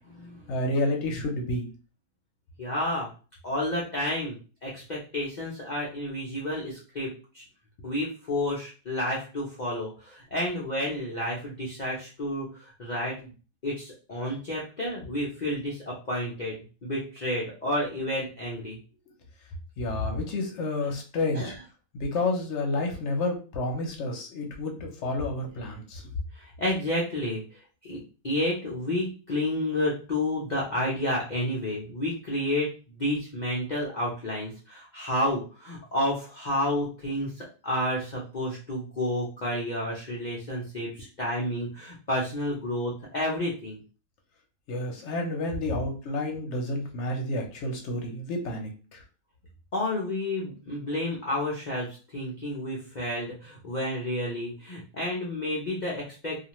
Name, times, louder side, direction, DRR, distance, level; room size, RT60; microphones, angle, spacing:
voice 1, 0.5-1.7 19.8-21.5 21.9-26.0 44.7-49.0, left 2 dB, 60° left, 2 dB, 0.8 m, -30 dB
voice 2, 2.6-3.1 3.4-7.4 7.8-13.3 13.6-16.6 16.8-18.8 20.8-20.9 21.3-21.6 26.3-27.4 27.8-28.0 28.2-43.8 49.7-56.5, left 1 dB, 80° left, -4 dB, 0.4 m, -30 dB
2.5 x 2.4 x 2.9 m, 0.35 s
omnidirectional pair, 1.7 m